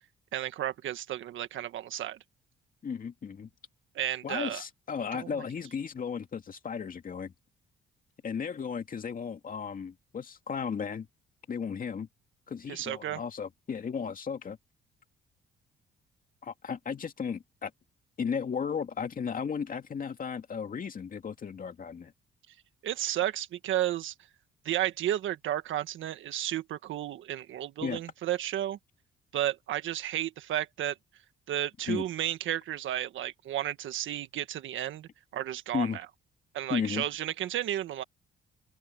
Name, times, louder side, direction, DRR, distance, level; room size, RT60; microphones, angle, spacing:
voice 1, 0.3-2.2 3.9-4.6 5.1-5.4 12.7-13.2 22.8-24.1 24.6-28.8 29.3-30.9 31.5-36.0 36.5-38.0, right 12 dB, 75° right, 1.5 m, -32 dB
voice 2, 2.8-3.5 4.2-7.3 8.2-11.1 11.5-12.1 12.5-14.6 16.4-17.7 18.2-22.1 27.8-28.0 31.9-32.0 35.7-36.0 36.7-37.0, left 6 dB, 45° left, 2.3 m, -34 dB
open air
cardioid pair, 90°, 20 cm